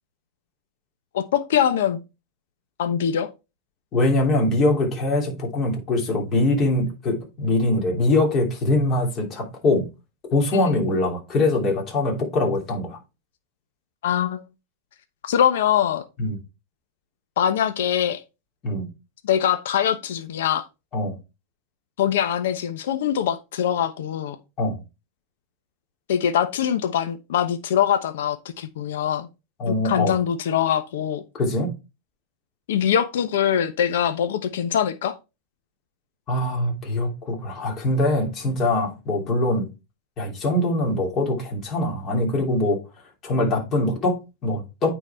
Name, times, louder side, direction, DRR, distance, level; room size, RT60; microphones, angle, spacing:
voice 1, 1.1-2.0 2.8-3.3 10.5-10.8 14.0-14.4 15.2-16.0 17.4-18.2 19.2-20.6 22.0-24.4 26.1-29.3 29.7-31.2 32.7-35.1, left 9 dB, 80° left, 0.9 m, -23 dB
voice 2, 3.9-9.8 10.3-13.0 16.2-16.4 18.6-18.9 20.9-21.2 24.6-24.8 29.6-30.1 31.4-31.7 36.3-39.7 40.2-42.8 43.2-44.9, left 2 dB, 30° left, 2.9 m, -23 dB
9.2 x 4.1 x 4.3 m
supercardioid pair, 140°, 0 cm